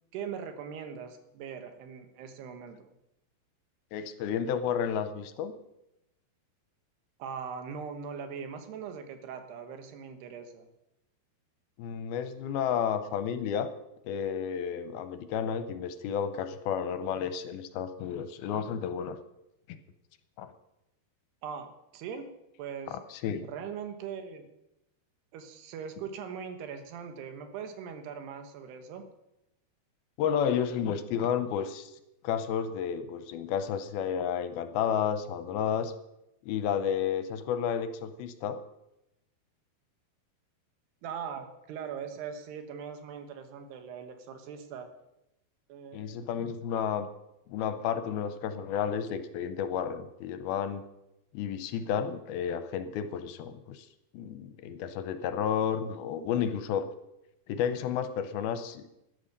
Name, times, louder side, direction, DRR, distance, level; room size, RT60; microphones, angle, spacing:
voice 1, 0.1-2.9 7.2-10.7 21.4-22.3 22.6-23.0 23.4-24.5 25.3-29.1 41.0-44.9 45.7-46.3, right 7 dB, 75° right, 7 dB, 3.3 m, -40 dB
voice 2, 3.9-5.5 11.8-13.7 14.1-19.2 20.4-20.5 23.1-23.4 30.2-31.9 32.2-35.9 36.5-38.6 45.9-47.1 47.5-50.8 51.3-53.9 54.1-56.9 57.5-58.8, left 8 dB, 75° left, 10 dB, 2.4 m, -31 dB
12.5 x 11.0 x 6.6 m, 0.87 s
omnidirectional pair, 4.8 m